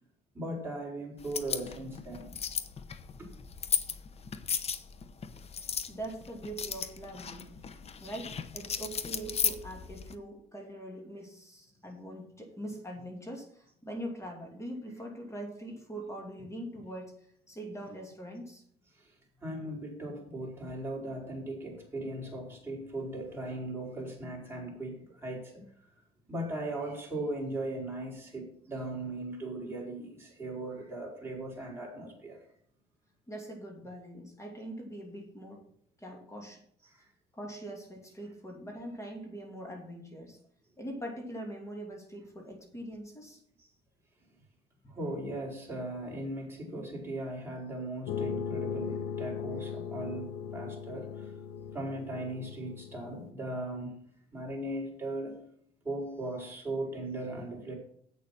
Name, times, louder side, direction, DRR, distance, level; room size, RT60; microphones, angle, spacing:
voice 1, 0.3-2.4 3.2-3.3 18.9-19.1 19.4-25.6 26.3-32.4 36.9-37.0 44.9-51.3 51.7-54.0 54.3-55.4 55.8-57.7, right 1 dB, 15° right, -3 dB, 4.6 m, -38 dB
sound 1, 1.2-10.1, left 6 dB, 35° left, 0.9 m, -36 dB
voice 2, 5.9-7.5 8.0-17.1 17.5-18.6 33.3-35.6 36.0-36.6 37.3-40.4 40.8-43.4, right 1 dB, 15° left, 1 dB, 2.7 m, -42 dB
sound 2, 48.1-53.3, left 7 dB, 85° left, 0.6 m, -38 dB
8.4 x 6.8 x 6.1 m, 0.64 s
cardioid pair, 110°, 17 cm